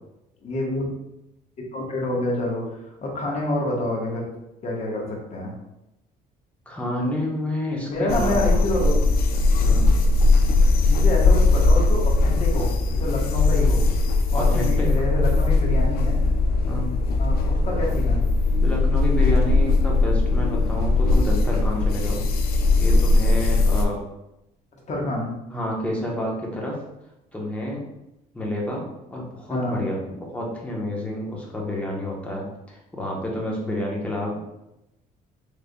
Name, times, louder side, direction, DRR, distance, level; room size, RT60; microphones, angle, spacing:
voice 1, 0.4-0.9 1.7-4.3 4.6-5.5 7.9-8.9 10.9-12.7 13.0-13.8 14.3-16.2 17.2-18.2 24.9-25.3 29.5-29.8, left 1 dB, 45° left, -1 dB, 1.1 m, -27 dB
voice 2, 6.7-8.6 9.6-9.9 14.3-14.9 16.6-17.0 18.6-22.2 22.7-24.0 25.5-26.8 27.3-27.8 28.3-34.4, left 1 dB, 10° left, -3 dB, 0.9 m, -29 dB
sound 1, 8.1-23.9, left 3 dB, 65° left, 0.4 m, -19 dB
3.8 x 3.3 x 2.2 m, 0.90 s
cardioid pair, 110°, 17 cm